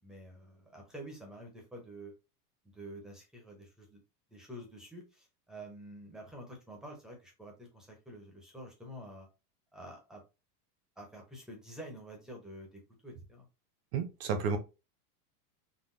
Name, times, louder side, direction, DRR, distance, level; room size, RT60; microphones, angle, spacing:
voice 1, 0.0-2.1 2.7-4.0 4.3-9.3 9.7-10.2 11.0-13.5, right 1 dB, ahead, 0.6 m, -48 dB
voice 2, 13.9-14.6, right 5 dB, 40° right, 0.7 m, -31 dB
3.8 x 2.2 x 2.5 m
supercardioid pair, 160°, 46 cm